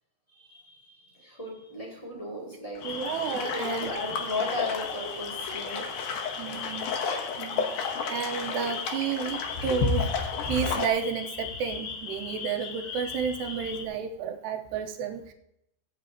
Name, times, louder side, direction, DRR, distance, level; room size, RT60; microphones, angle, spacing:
voice 1, 0.3-3.0 3.5-5.9 6.5-6.6, left 2 dB, 10° left, -4 dB, 1.8 m, -36 dB
sound 1, 2.8-10.9, left 6 dB, 80° left, 1.8 m, -34 dB
sound 2, 2.8-13.8, left 5 dB, 60° left, 2.8 m, -35 dB
voice 2, 2.8-3.9 6.4-6.9 7.4-7.7 8.1-15.3, right 7 dB, 75° right, 4 dB, 2.9 m, -31 dB
19.0 x 8.7 x 2.9 m, 0.81 s
omnidirectional pair, 5.3 m